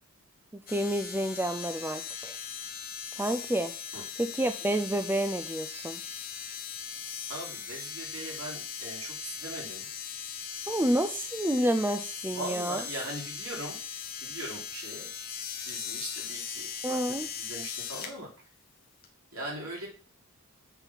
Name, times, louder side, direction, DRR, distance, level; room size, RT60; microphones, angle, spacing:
voice 1, 0.5-2.4 3.2-3.7 4.2-6.0 10.7-12.8 16.8-17.3, right 1 dB, 10° right, 8 dB, 0.4 m, -29 dB
sound 1, 0.7-18.1 19.0-19.1, left 7 dB, 40° left, 1.1 m, -39 dB
voice 2, 7.3-9.9 12.3-13.8 14.2-15.1 15.6-18.3 19.3-19.9, right 1 dB, 80° right, -3 dB, 3.5 m, -40 dB
8.0 x 4.0 x 6.0 m, 0.38 s
head